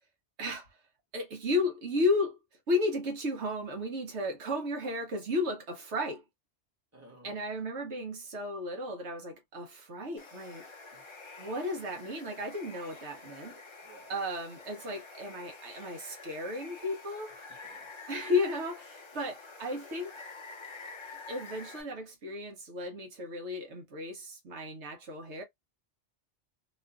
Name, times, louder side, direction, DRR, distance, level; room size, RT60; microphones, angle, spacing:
voice 1, 0.4-0.7 1.1-2.4 2.7-6.2 7.2-10.6 11.4-13.5 14.1-17.3 18.1-20.1 21.3-25.4, left 2 dB, 70° right, 1.1 m, -34 dB
voice 2, 6.9-7.7 10.9-11.2 13.8-14.2 17.5-17.9, right 2 dB, 15° right, 1.2 m, -57 dB
Water, 10.2-21.8, left 3 dB, 35° left, 0.5 m, -48 dB
2.9 x 2.4 x 2.2 m
omnidirectional pair, 1.2 m